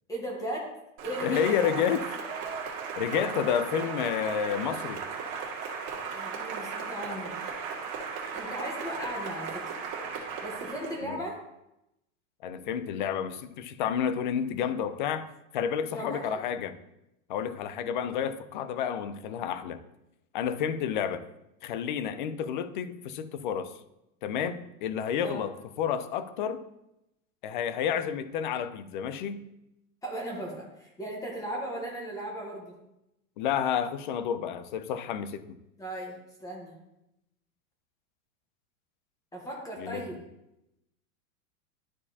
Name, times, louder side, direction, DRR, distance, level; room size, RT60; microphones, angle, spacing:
voice 1, 0.1-0.7 1.0-1.6 6.1-7.3 8.3-9.7 10.4-11.4 15.9-16.3 25.2-25.5 30.0-32.8 35.8-36.8 39.3-40.2, right 1 dB, 10° left, -2 dB, 0.9 m, -37 dB
Cheering / Applause, 1.0-11.0, right 6 dB, 30° right, 1.9 m, -36 dB
voice 2, 1.2-2.2 3.0-5.0 11.0-11.2 12.4-15.3 15.5-16.8 17.3-19.8 20.3-21.2 21.6-23.7 24.2-26.7 27.4-29.4 33.4-35.4 39.8-40.0, left 8 dB, 40° left, 12 dB, 0.4 m, -30 dB
12.0 x 4.7 x 2.7 m, 0.88 s
supercardioid pair, 160°, 42 cm